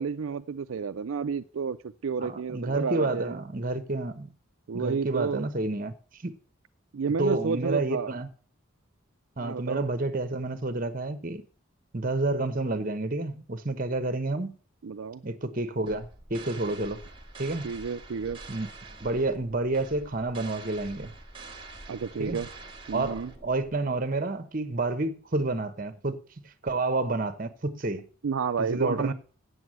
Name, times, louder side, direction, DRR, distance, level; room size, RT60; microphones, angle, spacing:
voice 1, 0.0-3.4 4.7-5.5 6.9-8.1 9.4-9.9 14.8-15.2 17.6-18.4 21.9-22.5 22.9-23.3 28.2-29.1, right 5 dB, 75° right, 0.4 m, -31 dB
voice 2, 2.2-4.3 4.7-6.3 7.2-8.3 9.4-11.4 11.9-14.5 15.2-17.0 17.4-17.7 18.5-18.7 19.0-21.1 22.2-22.4 22.9-26.2 26.4-28.0 28.7-29.1, right 2 dB, 40° right, 1.0 m, -29 dB
sound 1, 15.9-23.7, right 3 dB, 25° right, 1.5 m, -46 dB
8.1 x 8.0 x 7.8 m
head